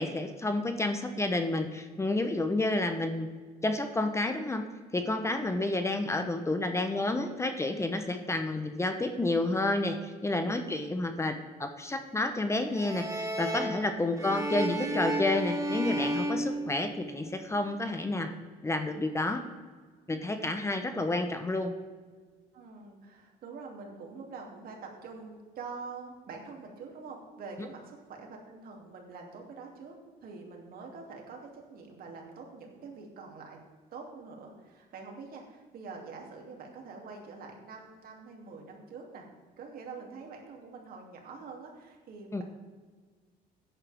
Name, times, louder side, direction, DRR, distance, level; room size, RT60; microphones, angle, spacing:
voice 1, 0.0-3.3 3.6-4.6 4.9-18.3 18.6-19.4 20.1-21.7 42.3-42.4, left 2 dB, 15° left, 7 dB, 0.9 m, -30 dB
sound 1, 12.7-17.3, right 1 dB, 20° right, 1.7 m, -33 dB
voice 2, 13.8-14.2 20.1-20.6 22.5-30.0 30.2-33.6 33.9-39.3 39.6-42.4, right 4 dB, 60° right, 1 dB, 2.8 m, -45 dB
14.5 x 10.0 x 3.5 m, 1.5 s
cardioid pair, 110°, 17 cm